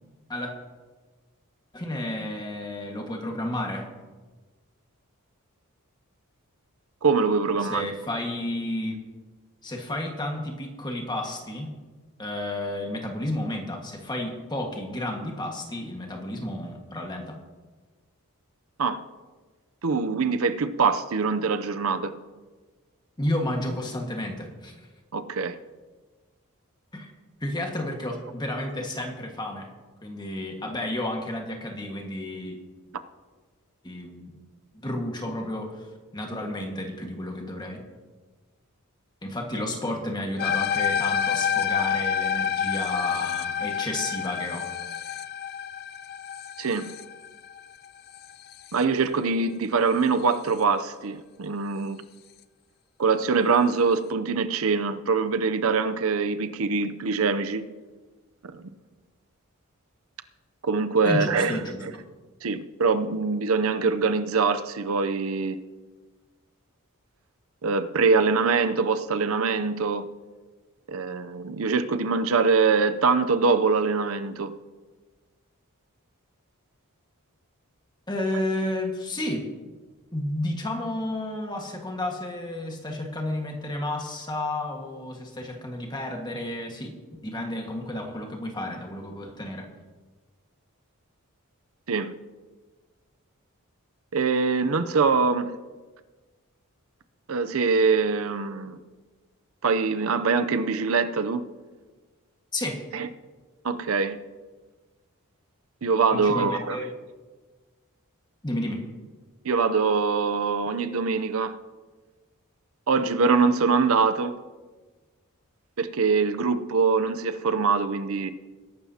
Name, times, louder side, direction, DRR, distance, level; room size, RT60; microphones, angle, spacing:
voice 1, 1.7-3.9 7.6-9.0 9.6-11.7 12.2-17.4 23.2-24.7 26.9-27.1 27.4-29.7 30.0-32.6 33.8-34.3 34.8-35.9 36.1-37.8 39.2-44.7 61.0-61.8 78.1-79.4 80.1-87.0 87.2-89.7 102.5-102.8 106.1-106.9 108.4-108.8, left 1 dB, 20° left, 1.6 m, -31 dB
voice 2, 7.0-7.9 18.8-19.0 19.8-22.2 25.1-25.6 46.6-46.9 48.7-52.0 53.0-57.6 58.4-58.7 60.6-61.6 61.8-61.9 62.4-65.6 67.6-70.1 70.9-74.5 91.9-92.1 94.1-95.6 97.3-98.8 99.6-101.4 102.9-103.1 103.6-104.2 105.8-106.8 109.4-111.6 112.9-114.4 115.8-118.3, right 4 dB, 65° right, 0.6 m, -23 dB
sound 1, 40.4-48.8, left 8 dB, 45° left, 0.5 m, -28 dB
21.5 x 11.5 x 2.8 m
head